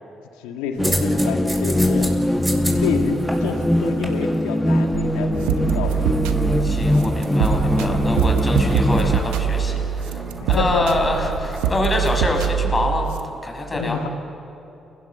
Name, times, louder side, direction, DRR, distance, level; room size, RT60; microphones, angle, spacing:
voice 1, 0.4-2.1 2.8-6.0 10.5-11.0 13.7-14.1, left 6 dB, 90° left, 5 dB, 1.8 m, -28 dB
sound 1, 0.8-9.2, left 1 dB, 5° left, 1.3 m, -21 dB
sound 2, 0.8-12.6, right 1 dB, 20° right, 7.9 m, -34 dB
sound 3, 4.9-13.2, right 8 dB, 90° right, 1.1 m, -24 dB
voice 2, 6.6-14.0, left 2 dB, 30° left, 2 dB, 6.1 m, -26 dB
29.5 x 19.5 x 7.9 m, 2.8 s
hypercardioid pair, 50°, 0 cm